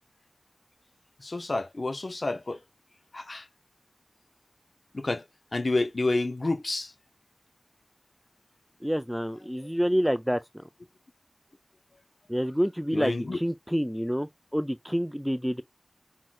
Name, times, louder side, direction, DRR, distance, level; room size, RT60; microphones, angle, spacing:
voice 1, 1.2-2.6 3.1-3.4 4.9-5.2 5.5-6.9 12.9-13.4, left 2 dB, 85° left, 0.6 m, -29 dB
voice 2, 8.8-10.4 12.3-15.6, equal, ahead, 0.3 m, -28 dB
5.9 x 3.7 x 2.3 m
wide cardioid pair, 45°, 0 cm